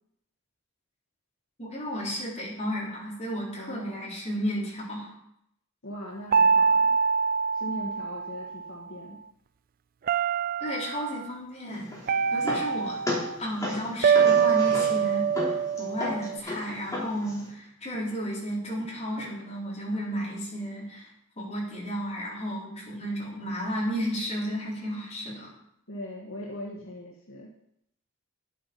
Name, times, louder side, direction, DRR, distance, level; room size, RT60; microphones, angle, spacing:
voice 1, 1.6-5.1 10.6-11.9 12.3-13.0 13.4-21.1 21.4-25.5, equal, 30° left, -5 dB, 4.2 m, -33 dB
voice 2, 3.6-4.1 5.8-6.9 7.5-9.2 25.9-27.5, equal, 65° left, -3 dB, 1.8 m, -40 dB
sound 1, 6.3-8.7 10.1-11.1 12.1-13.4 14.0-16.4, right 6 dB, 40° right, 0.3 m, -24 dB
sound 2, 11.7-17.5, left 1 dB, 15° left, 3.4 m, -35 dB
10.5 x 8.4 x 5.5 m, 0.75 s
head